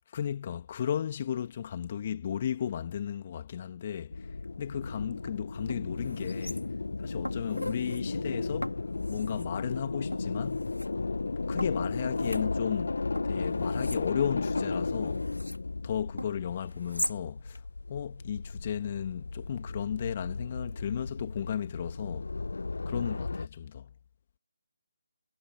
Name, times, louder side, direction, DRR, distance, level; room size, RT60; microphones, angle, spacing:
voice 1, 0.1-6.6 7.0-8.8 9.1-10.7 11.5-12.9 13.2-15.3 15.8-17.6 17.9-22.3 22.9-23.9, left 9 dB, 35° left, 2.6 m, -34 dB
sound 1, 4.1-23.5, left 3 dB, 65° left, 1.6 m, -34 dB
sound 2, 5.1-5.3 5.7-6.9 7.2-8.0 8.6-9.5 10.1-10.9 11.6-12.9 13.2-15.6 16.2-17.2 17.5-17.6, left 1 dB, 90° left, 4.0 m, -40 dB
figure-of-eight pair, 150°, 0 cm